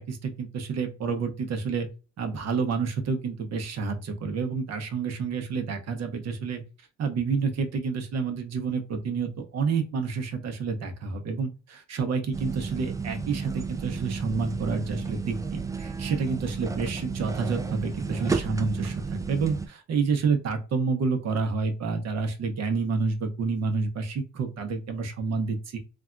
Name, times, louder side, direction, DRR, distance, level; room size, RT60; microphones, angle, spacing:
voice 1, 0.0-1.9 2.2-6.6 7.0-25.8, right 5 dB, 60° right, 6 dB, 0.8 m, -29 dB
sound 1, 12.3-19.7, right 5 dB, 10° right, 0.3 m, -32 dB
3.3 x 2.3 x 2.4 m, 0.33 s
cardioid pair, 90°, 30 cm